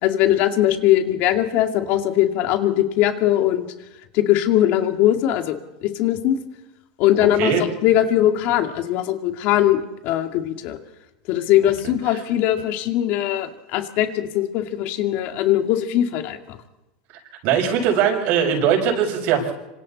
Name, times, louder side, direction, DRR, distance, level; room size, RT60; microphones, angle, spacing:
voice 1, 0.0-3.7 4.1-5.6 5.8-6.4 7.0-7.5 7.8-9.8 10.0-10.8 11.3-16.6, left 12 dB, 50° left, 5 dB, 2.4 m, -20 dB
voice 2, 17.4-19.5, right 8 dB, 50° right, 1 dB, 7.4 m, -20 dB
26.0 x 26.0 x 4.3 m, 0.98 s
supercardioid pair, 140°, 4 cm